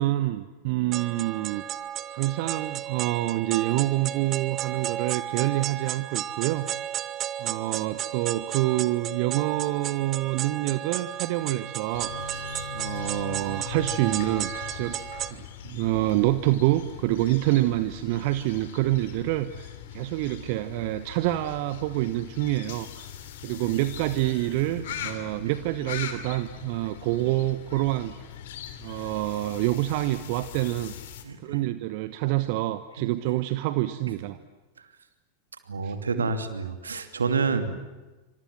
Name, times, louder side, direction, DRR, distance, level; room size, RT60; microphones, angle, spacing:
voice 1, 0.0-1.6 2.1-6.7 7.4-12.1 12.7-15.0 15.3-23.1 23.4-28.1 28.8-30.9 31.4-34.4 35.8-36.3, right 16 dB, 45° right, 13 dB, 1.1 m, -27 dB
sound 1, 0.9-15.3, right 11 dB, 30° right, 1.2 m, -33 dB
sound 2, 11.9-31.2, left 8 dB, 55° left, 3.2 m, -40 dB
voice 2, 24.7-25.1 31.2-31.4 33.0-33.1 35.7-37.8, right 4 dB, 70° right, 9 dB, 2.7 m, -28 dB
27.5 x 26.0 x 7.7 m, 1.2 s
figure-of-eight pair, 90°, 0 cm